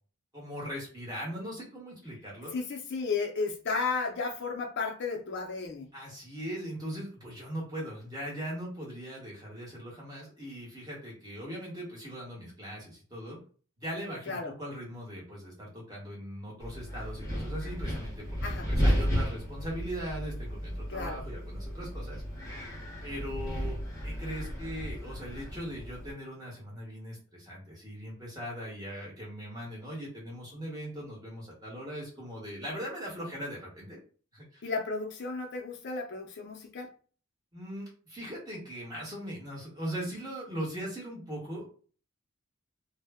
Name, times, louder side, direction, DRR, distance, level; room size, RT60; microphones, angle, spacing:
voice 1, 0.3-2.6 5.9-13.4 13.8-22.2 23.0-23.8 24.0-34.0 34.3-34.6 37.5-41.7, equal, 20° right, -4 dB, 1.0 m, -40 dB
voice 2, 2.5-5.9 14.3-14.5 18.4-18.7 20.9-21.2 34.6-36.9, left 4 dB, 55° left, 2 dB, 0.5 m, -33 dB
Wind, 16.6-26.1, equal, 15° left, 0.7 m, -33 dB
2.1 x 2.0 x 3.4 m, 0.40 s
head